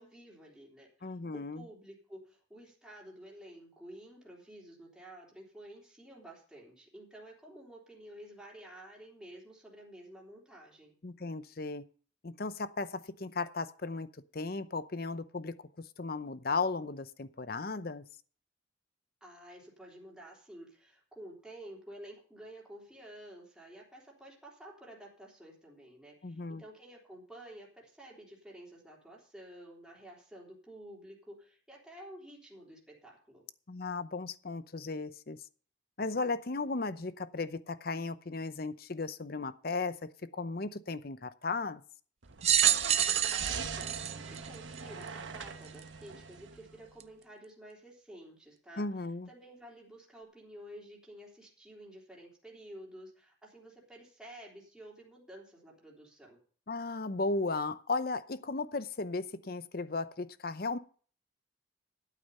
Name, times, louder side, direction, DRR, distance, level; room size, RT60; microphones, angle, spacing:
voice 1, 0.0-10.9 19.2-33.4 43.1-48.8 49.3-56.4, right 1 dB, 5° right, 3.4 m, -51 dB
voice 2, 1.0-1.6 11.0-11.8 12.2-14.1 14.3-15.5 16.0-18.0 26.2-26.6 33.7-35.4 36.0-41.8 48.8-49.3 56.7-60.8, left 3 dB, 50° left, 0.7 m, -35 dB
Car / Engine starting, 42.2-46.9, right 6 dB, 75° right, 1.1 m, -40 dB
sound 1, 42.4-45.1 45.8-45.9 47.0-47.1, right 11 dB, 30° right, 0.5 m, -28 dB
12.5 x 8.5 x 5.5 m
head